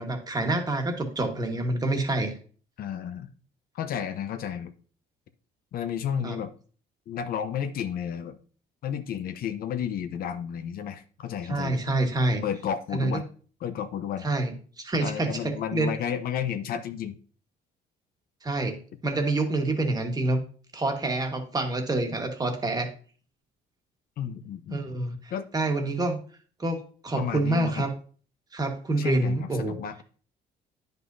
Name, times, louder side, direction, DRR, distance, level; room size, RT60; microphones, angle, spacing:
voice 1, 0.0-2.3 6.2-6.4 11.5-12.4 12.9-13.2 14.2-15.9 18.4-20.4 20.7-22.9 24.7-26.2 26.6-27.9 28.5-29.8, right 2 dB, 25° right, 4 dB, 1.4 m, -27 dB
voice 2, 2.8-3.3 3.7-4.7 5.7-6.5 7.1-8.4 8.8-11.9 12.4-13.2 13.6-14.3 15.0-17.1 24.2-24.9 25.3-25.5 27.1-27.8 29.0-30.0, left 8 dB, 60° left, 9 dB, 0.7 m, -32 dB
9.8 x 5.4 x 2.6 m, 0.42 s
cardioid pair, 110°, 17 cm